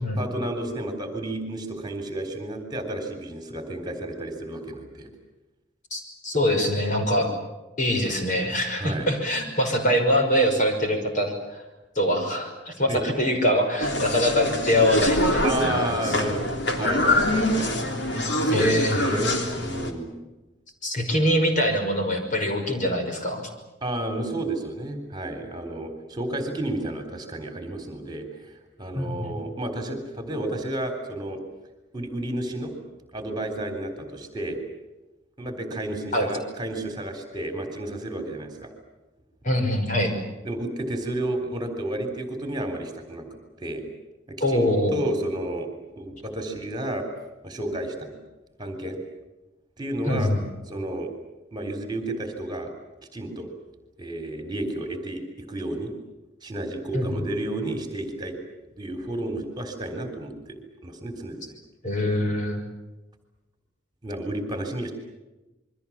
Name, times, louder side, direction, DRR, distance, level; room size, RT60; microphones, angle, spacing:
voice 1, 0.1-5.1 8.8-9.1 12.9-13.0 15.4-16.4 16.8-17.8 18.0-20.1 23.8-31.4 31.9-32.7 33.1-34.6 35.4-38.7 40.4-43.3 43.6-43.8 44.5-45.7 46.0-47.1 47.4-48.1 48.6-49.0 49.8-50.3 50.7-51.1 51.5-52.7 53.1-53.5 54.0-55.9 56.4-58.4 58.8-60.6 60.8-61.5 64.0-64.9, right 1 dB, 25° right, 6 dB, 3.8 m, -31 dB
voice 2, 5.9-7.3 7.8-11.6 12.0-15.5 16.0-16.2 18.5-18.9 20.8-23.5 28.9-29.4 36.1-36.3 39.4-40.1 44.4-45.0 50.0-50.4 56.9-57.0 61.8-62.6, equal, 45° left, 4 dB, 5.8 m, -23 dB
sound 1, 13.8-19.9, left 1 dB, 65° left, 3.5 m, -24 dB
28.5 x 23.0 x 7.4 m, 1.0 s
head